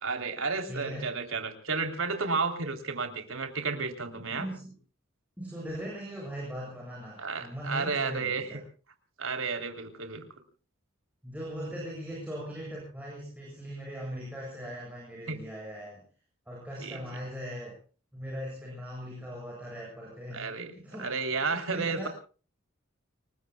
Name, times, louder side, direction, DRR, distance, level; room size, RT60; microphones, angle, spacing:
voice 1, 0.0-4.5 7.2-8.5 9.2-10.3 15.3-15.4 16.8-17.0 20.3-20.7 21.0-22.1, right 4 dB, 80° right, 6 dB, 3.4 m, -32 dB
voice 2, 0.7-1.0 4.2-4.8 5.4-8.6 11.2-16.0 16.5-17.8 18.1-20.5 20.8-21.1 21.5-22.1, equal, 5° right, -4 dB, 7.9 m, -39 dB
29.5 x 21.0 x 2.3 m, 0.38 s
head